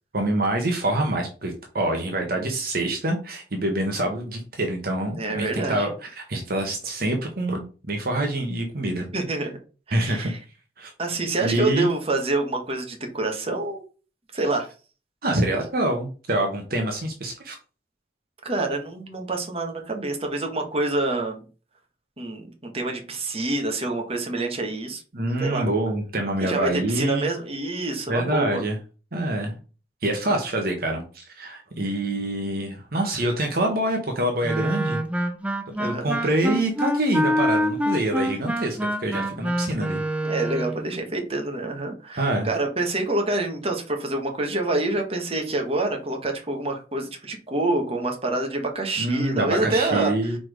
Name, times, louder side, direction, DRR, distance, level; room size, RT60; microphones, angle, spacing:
voice 1, 0.1-9.1 9.9-10.3 10.8-10.9 11.4-11.9 15.2-17.6 25.1-27.3 28.1-28.8 29.1-29.5 30.0-35.0 35.8-40.0 42.2-42.5 49.0-50.4, right 1 dB, 55° right, 3 dB, 1.1 m, -26 dB
voice 2, 5.2-5.9 9.0-9.6 9.9-10.4 11.0-13.8 14.3-14.7 18.4-21.4 22.2-25.7 26.4-28.6 35.8-36.3 40.2-50.4, right 2 dB, 35° right, 3 dB, 1.5 m, -27 dB
Wind instrument woodwind instrument, 34.4-40.8, equal, 10° right, 0.5 m, -26 dB
4.7 x 4.3 x 5.0 m, 0.36 s
head